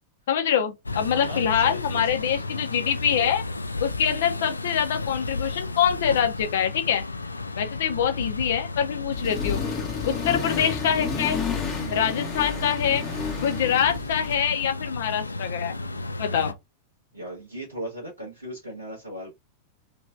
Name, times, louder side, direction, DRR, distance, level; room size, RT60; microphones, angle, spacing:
voice 1, 0.3-3.4 3.8-7.0 7.6-9.6 10.1-11.4 11.9-13.0 13.4-15.7 16.2-16.5, left 8 dB, 60° left, 0.7 m, -24 dB
sound 1, 0.9-16.5, left 2 dB, 80° left, 0.3 m, -33 dB
voice 2, 1.1-2.6 11.8-12.0 17.1-19.3, right 1 dB, 90° right, 1.1 m, -38 dB
Accelerating revving vroom, 9.1-14.3, left 6 dB, 25° left, 1.0 m, -31 dB
3.1 x 3.0 x 2.5 m
figure-of-eight pair, 90°, 0 cm